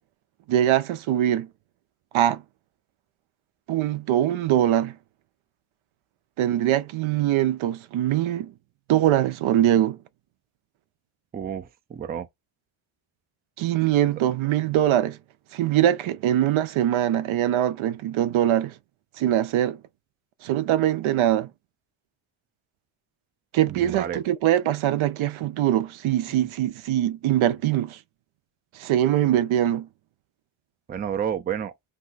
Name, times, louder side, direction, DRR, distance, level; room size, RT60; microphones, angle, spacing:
voice 1, 0.5-1.5 2.1-2.4 3.7-5.0 6.4-8.5 8.9-10.0 13.6-15.2 15.5-18.7 19.2-19.8 20.4-21.5 23.5-28.0 28.8-29.9, right 12 dB, 75° right, 0.5 m, -22 dB
voice 2, 11.3-12.3 23.7-24.2 26.3-26.5 30.9-31.7, right 8 dB, 20° right, 0.3 m, -30 dB
2.8 x 2.2 x 3.9 m
cardioid pair, 105°, 48 cm